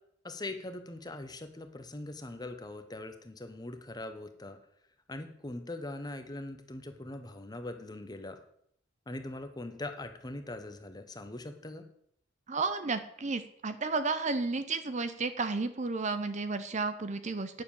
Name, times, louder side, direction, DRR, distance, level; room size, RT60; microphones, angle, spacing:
voice 1, 0.2-4.6 5.1-8.4 9.1-11.8, left 2 dB, 20° left, 8 dB, 1.0 m, -41 dB
voice 2, 12.5-17.6, right 3 dB, 35° right, 11 dB, 0.7 m, -32 dB
9.7 x 6.8 x 7.1 m, 0.70 s
head